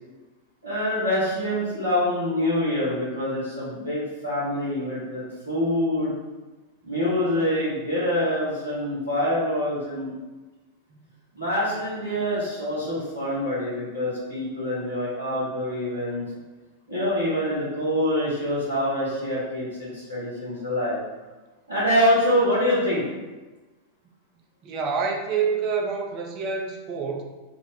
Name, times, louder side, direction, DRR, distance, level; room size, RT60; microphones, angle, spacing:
voice 1, 0.6-6.1 6.8-10.1 11.3-16.2 16.9-21.0 21.7-23.0, left 1 dB, 90° right, -7 dB, 1.2 m, -25 dB
voice 2, 24.6-27.2, right 5 dB, 35° right, 2 dB, 0.5 m, -27 dB
2.9 x 2.0 x 4.0 m, 1.2 s
figure-of-eight pair, 90°, 0 cm